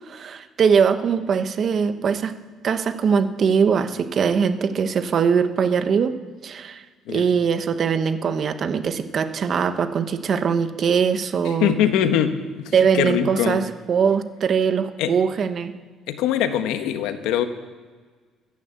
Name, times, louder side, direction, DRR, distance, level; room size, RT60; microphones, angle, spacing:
voice 1, 0.0-2.3 2.6-6.1 6.4-6.8 7.1-11.8 12.7-15.7, right 6 dB, 45° right, 10 dB, 1.1 m, -21 dB
voice 2, 11.4-13.7 15.0-15.1 16.1-17.5, left 10 dB, 90° left, 9 dB, 1.2 m, -23 dB
14.5 x 9.5 x 8.4 m, 1.5 s
cardioid pair, 130°, 0 cm